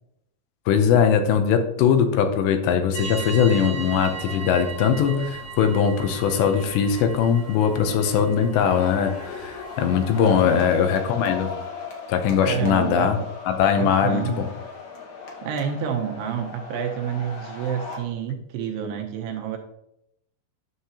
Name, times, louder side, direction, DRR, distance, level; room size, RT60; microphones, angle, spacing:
voice 1, 0.7-11.5 12.1-13.2 13.5-14.5, left 7 dB, 80° left, 7 dB, 2.9 m, -21 dB
sound 1, 2.9-10.6, right 5 dB, 55° right, 1.2 m, -38 dB
sound 2, 3.7-18.0, left 5 dB, 65° left, 2.0 m, -38 dB
voice 2, 10.2-10.6 12.4-13.1 13.8-14.4 15.4-19.6, right 8 dB, 80° right, 3 dB, 2.6 m, -28 dB
9.5 x 6.5 x 2.8 m, 0.78 s
omnidirectional pair, 5.1 m